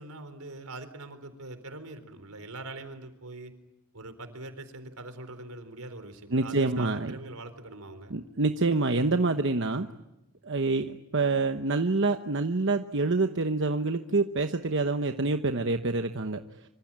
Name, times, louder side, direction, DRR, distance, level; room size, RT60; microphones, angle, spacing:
voice 1, 0.0-3.5 3.9-8.1, right 2 dB, 80° right, 9 dB, 4.1 m, -43 dB
voice 2, 6.3-7.1 8.1-9.9 10.4-16.4, right 3 dB, 55° right, 7 dB, 1.1 m, -26 dB
25.5 x 25.5 x 8.8 m, 0.93 s
head